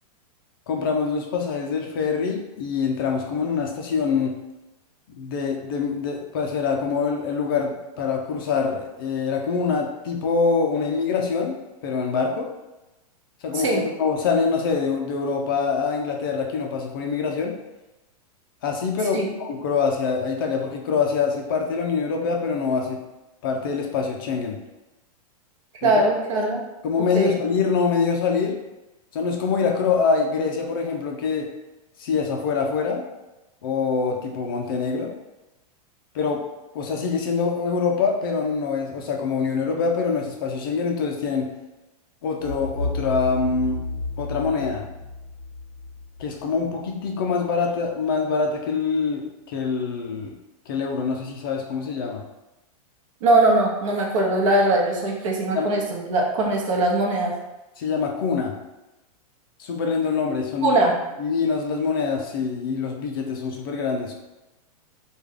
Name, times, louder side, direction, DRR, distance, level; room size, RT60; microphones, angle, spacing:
voice 1, 0.7-4.4 5.2-12.5 13.4-17.6 18.6-23.0 23.4-24.6 25.8-25.9 26.8-28.6 29.1-31.5 32.0-33.0 33.6-35.1 36.1-36.4 36.7-41.5 42.2-43.8 44.2-44.9 46.2-50.3 50.7-52.2 55.5-55.7 57.8-58.6 59.6-60.7 61.2-64.2, left 5 dB, 35° left, 1 dB, 0.4 m, -25 dB
voice 2, 25.8-26.6 27.1-27.3 53.2-57.3 60.6-60.9, right 2 dB, 55° right, -1 dB, 0.8 m, -21 dB
sound 1, 42.4-47.3, left 3 dB, 5° right, 0.7 m, -32 dB
3.2 x 2.3 x 3.6 m, 1.0 s
supercardioid pair, 175°, 19 cm